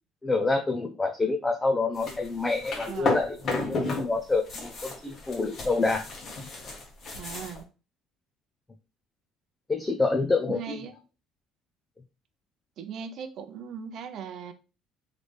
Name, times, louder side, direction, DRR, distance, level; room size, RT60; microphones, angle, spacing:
voice 1, 0.2-3.4 3.7-6.1 9.7-10.8, left 3 dB, 15° left, 0.5 m, -27 dB
sound 1, 1.9-4.1 4.3-7.6, left 3 dB, 40° left, 1.3 m, -32 dB
voice 2, 2.9-3.2 7.1-7.6 10.5-10.9 12.8-14.5, right 7 dB, 50° right, 0.7 m, -38 dB
3.9 x 3.2 x 3.3 m
cardioid pair, 145°, 0 cm